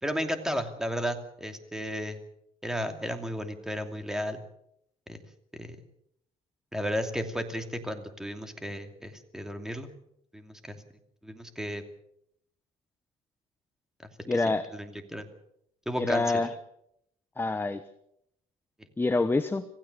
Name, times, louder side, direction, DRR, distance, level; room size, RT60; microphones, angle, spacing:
voice 1, 0.0-2.2 2.6-4.4 5.1-5.2 5.5-5.8 6.7-9.9 10.3-10.8 11.2-11.8 14.7-15.3 15.9-16.4, equal, 5° right, 6 dB, 2.7 m, -33 dB
voice 2, 14.3-14.7 16.0-16.5 17.4-17.8 19.0-19.7, left 3 dB, 10° left, 11 dB, 1.0 m, -26 dB
26.5 x 16.0 x 6.8 m, 0.76 s
cardioid pair, 120°, 17 cm